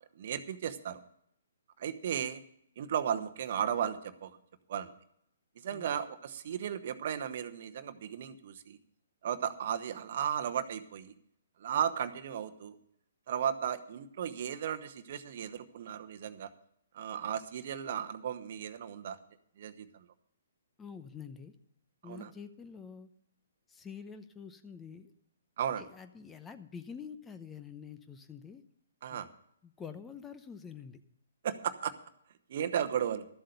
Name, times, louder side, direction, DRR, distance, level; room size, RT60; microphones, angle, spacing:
voice 1, 0.2-1.0 1.8-2.4 2.8-4.3 4.7-4.9 5.6-8.8 9.2-11.1 11.6-12.8 13.3-16.5 16.9-19.2 19.6-20.0 22.0-22.3 25.6-25.8 29.0-29.3 31.4-31.9 32.5-33.3, right 9 dB, 55° right, 9 dB, 1.0 m, -35 dB
voice 2, 20.8-21.5 22.0-23.1 23.7-25.1 25.8-28.6 29.1-29.2 29.6-31.0, left 6 dB, 15° left, 10 dB, 0.8 m, -47 dB
13.0 x 7.6 x 6.7 m, 0.70 s
hypercardioid pair, 130°, 0 cm